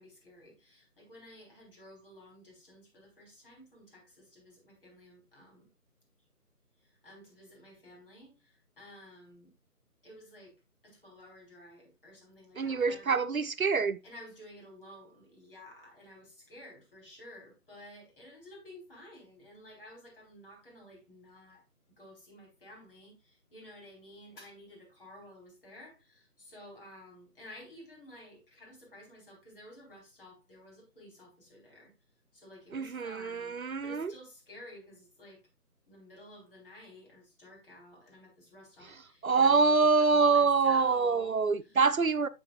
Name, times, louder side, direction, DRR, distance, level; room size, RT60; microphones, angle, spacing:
voice 1, 0.0-5.7 6.8-9.5 10.0-10.5 10.8-13.1 14.0-21.6 22.0-31.9 32.3-35.4 35.9-41.4, left 1 dB, 35° left, 4.1 m, -52 dB
voice 2, 12.6-14.0 32.7-34.1 39.2-42.3, right 4 dB, 60° right, 0.6 m, -25 dB
9.6 x 8.1 x 2.4 m
figure-of-eight pair, 165°, 47 cm